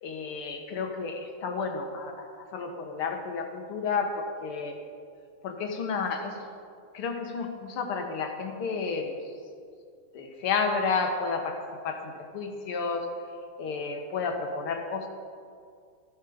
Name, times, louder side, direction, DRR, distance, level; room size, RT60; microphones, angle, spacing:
voice 1, 0.0-4.8 5.4-6.4 6.9-9.3 10.1-13.1 13.6-15.1, left 4 dB, 85° left, 4 dB, 2.2 m, -31 dB
15.0 x 11.5 x 5.1 m, 2.3 s
omnidirectional pair, 2.3 m